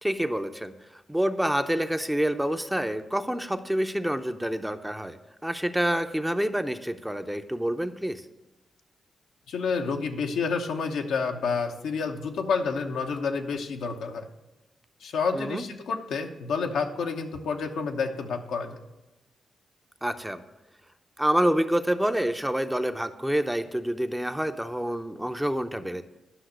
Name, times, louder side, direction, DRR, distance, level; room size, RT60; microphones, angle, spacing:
voice 1, 0.0-5.2 5.4-8.2 15.3-15.6 20.0-20.4 21.2-26.0, right 1 dB, 5° right, 8 dB, 0.7 m, -27 dB
voice 2, 9.5-14.3 15.0-18.8, left 5 dB, 80° left, 3 dB, 0.9 m, -29 dB
10.0 x 5.9 x 6.4 m, 1.0 s
supercardioid pair, 50°, 0 cm